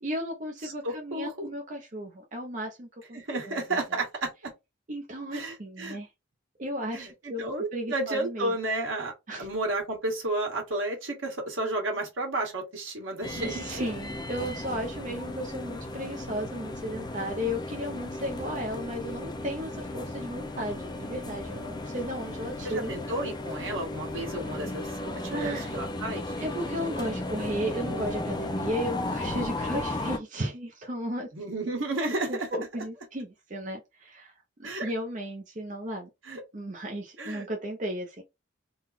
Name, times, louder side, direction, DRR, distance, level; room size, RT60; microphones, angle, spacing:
voice 1, 0.0-3.5 4.9-6.1 6.6-7.4 7.7-8.5 9.3-9.4 13.4-22.9 25.3-25.7 26.4-31.3 32.3-34.3 34.6-36.1 36.5-38.2, equal, 40° right, 0.7 m, -34 dB
voice 2, 0.6-1.5 3.1-4.3 5.3-6.0 6.9-9.1 9.4-13.9 22.6-26.3 31.3-32.5 32.8-32.9 34.6-34.9 36.2-36.4 37.2-37.5, right 2 dB, 75° right, 1.8 m, -32 dB
sound 1, 13.2-30.2, left 2 dB, 20° left, 0.6 m, -35 dB
3.9 x 2.3 x 4.1 m
head